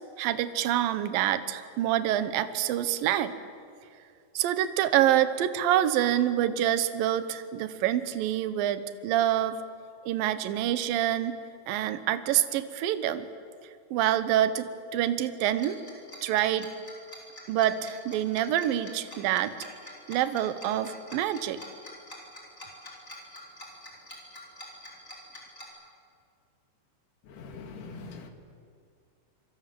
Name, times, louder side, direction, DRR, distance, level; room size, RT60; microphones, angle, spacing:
voice 1, 0.2-3.3 4.3-9.6 10.0-11.4 11.7-13.3 13.9-15.8 16.2-16.7 17.5-19.6 20.1-21.6, right 12 dB, 75° right, 12 dB, 2.1 m, -26 dB
Tick-tock, 15.6-25.6, left 1 dB, 15° left, 4.9 m, -45 dB
voice 2, 27.4-28.3, left 4 dB, 60° left, 5 dB, 3.9 m, -42 dB
27.0 x 23.5 x 7.7 m, 2.3 s
omnidirectional pair, 5.5 m